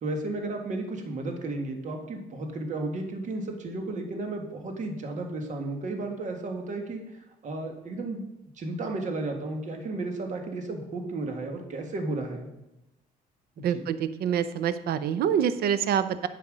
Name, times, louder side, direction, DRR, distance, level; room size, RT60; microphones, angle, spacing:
voice 1, 0.0-7.0 7.4-8.2 8.6-12.5 13.6-13.8, right 2 dB, 45° right, 4 dB, 1.7 m, -33 dB
voice 2, 13.6-16.3, right 8 dB, 65° right, 13 dB, 0.7 m, -26 dB
9.6 x 5.9 x 5.1 m, 0.93 s
cardioid pair, 110°, 17 cm